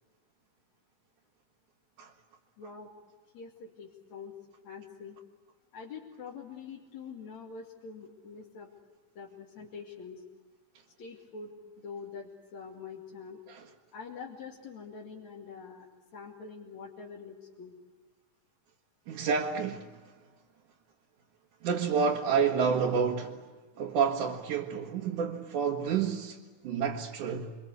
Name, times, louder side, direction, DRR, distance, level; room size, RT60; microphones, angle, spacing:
voice 1, 2.6-2.9 3.3-4.3 4.6-5.2 5.7-8.7 9.2-10.2 11.0-13.4 13.9-15.9 16.1-17.7, left 5 dB, 60° left, 3.7 m, -45 dB
voice 2, 19.1-20.0 21.6-23.5 23.8-26.4 26.6-27.6, right 6 dB, 80° right, 3.1 m, -29 dB
28.5 x 25.0 x 8.1 m
omnidirectional pair, 3.5 m